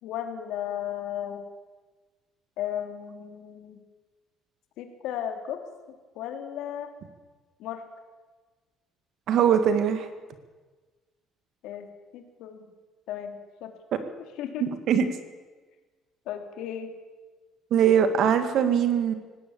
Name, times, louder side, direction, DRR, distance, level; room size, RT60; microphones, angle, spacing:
voice 1, 0.0-1.4 2.6-3.8 4.8-5.6 6.1-6.9 7.6-7.8 11.6-11.9 12.1-12.7 13.1-13.7 14.2-14.7 16.2-16.9, left 10 dB, 70° left, 6 dB, 3.1 m, -35 dB
voice 2, 9.3-10.1 14.6-15.1 17.7-19.1, right 8 dB, 50° right, 9 dB, 2.2 m, -21 dB
18.0 x 18.0 x 8.8 m, 1.3 s
cardioid pair, 155°, 0 cm